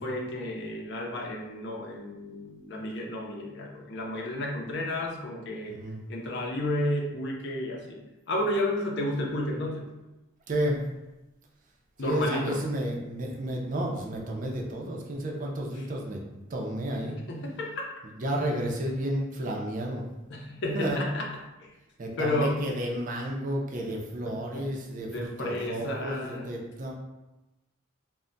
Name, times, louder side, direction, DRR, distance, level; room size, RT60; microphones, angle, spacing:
voice 1, 0.0-5.8 6.1-8.0 8.3-9.9 12.0-12.6 17.3-17.7 20.3-21.3 22.2-22.6 24.3-24.4 25.1-26.5, left 1 dB, 55° left, 0 dB, 0.5 m, -31 dB
voice 2, 5.7-6.0 10.5-10.8 12.0-16.2 16.5-17.2 18.2-20.0 20.7-21.0 22.0-26.9, right 1 dB, 40° right, -1 dB, 0.5 m, -31 dB
2.2 x 2.1 x 3.8 m, 1.0 s
head